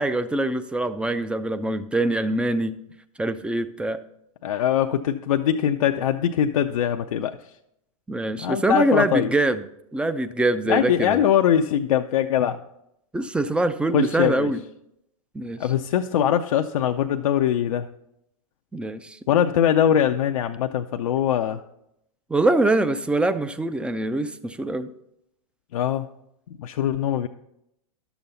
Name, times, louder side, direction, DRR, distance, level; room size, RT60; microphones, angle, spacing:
voice 1, 0.0-2.8 3.2-4.0 8.1-9.6 9.9-11.2 13.1-14.6 15.3-15.6 18.7-19.2 22.3-24.9, right 2 dB, 5° right, 11 dB, 0.4 m, -24 dB
voice 2, 4.4-7.4 8.4-9.3 10.7-12.6 13.9-14.5 15.6-17.9 19.3-21.6 25.7-26.1 26.6-27.3, left 10 dB, 70° left, 5 dB, 0.5 m, -22 dB
11.5 x 7.0 x 4.0 m, 0.80 s
hypercardioid pair, 100°, 18 cm